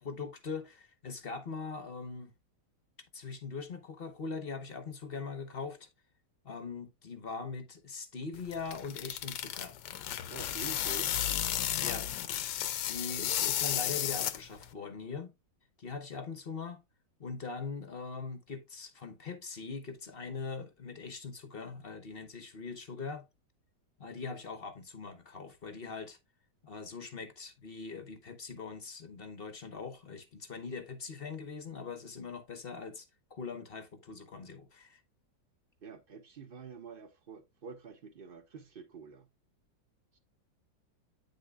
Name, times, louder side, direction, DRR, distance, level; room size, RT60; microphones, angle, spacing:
voice 1, 0.0-2.3 3.1-5.9 6.4-9.8 11.8-12.1 12.9-15.3 15.8-16.8 17.2-23.3 24.0-26.2 26.6-35.0, left 4 dB, 40° left, 0.9 m, -41 dB
sound 1, 8.3-14.7, left 11 dB, 75° left, 1.3 m, -33 dB
voice 2, 10.3-11.2 35.8-39.3 40.1-40.2, right 5 dB, 35° right, 1.1 m, -47 dB
8.8 x 6.5 x 2.3 m
omnidirectional pair, 1.9 m